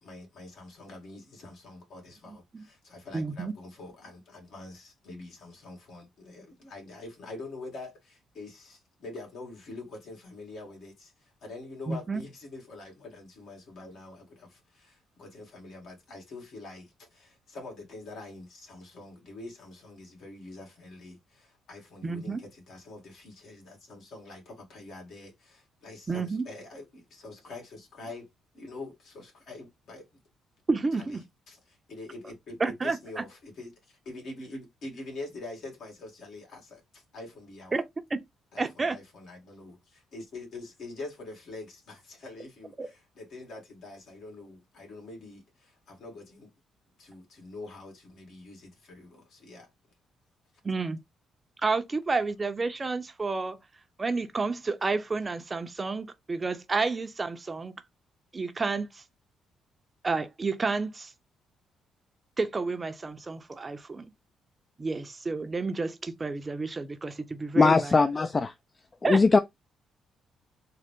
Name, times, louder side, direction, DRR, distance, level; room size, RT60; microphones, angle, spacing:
voice 1, 0.0-28.3 28.5-30.1 31.0-31.2 31.5-37.8 38.5-46.5 47.0-49.7, left 2 dB, 65° left, 1.8 m, -45 dB
voice 2, 2.3-2.7 3.1-3.5 11.9-12.2 22.0-22.4 26.1-26.4 30.7-31.2 32.6-33.2 37.7-37.8 38.1-38.2 38.6-39.0 42.8-42.9 50.6-51.0 51.6-53.6 54.0-57.8 58.3-59.0 60.0-61.1 62.4-64.1 64.8-68.1 69.0-69.4, right 4 dB, 30° right, 0.5 m, -30 dB
voice 3, 67.6-68.5 69.0-69.4, left 4 dB, 30° left, 0.3 m, -20 dB
3.7 x 2.1 x 3.5 m
cardioid pair, 90°, 0 cm